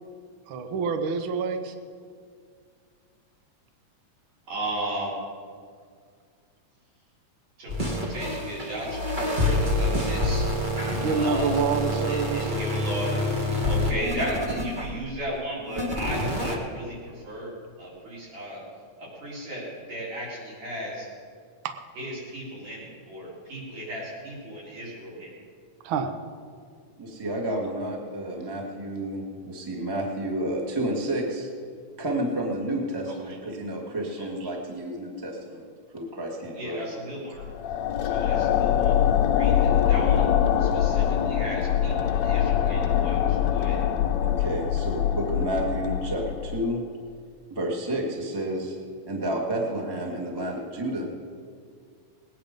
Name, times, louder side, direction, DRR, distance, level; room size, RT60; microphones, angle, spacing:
voice 1, 0.5-1.7 10.9-12.5 25.8-26.1, right 5 dB, 85° right, 7 dB, 1.1 m, -27 dB
voice 2, 4.5-5.1 7.6-10.4 11.1-11.6 12.0-13.1 13.7-17.5 17.8-18.6 19.0-21.1 22.0-25.4 33.1-33.2 34.2-34.3 36.5-37.5 38.0-39.0 39.3-40.3 40.6-43.8, right 1 dB, 60° right, -6 dB, 5.2 m, -35 dB
sound 1, 7.7-15.1 15.7-16.6, left 1 dB, 30° right, 0.8 m, -27 dB
voice 3, 27.0-31.5 32.0-35.7 35.9-37.0 44.2-46.8 47.5-48.8 49.1-51.1, right 1 dB, 10° right, -1 dB, 1.2 m, -30 dB
sound 2, 37.4-46.7, left 9 dB, 75° left, 1.8 m, -23 dB
19.5 x 9.8 x 5.2 m, 2.1 s
omnidirectional pair, 3.5 m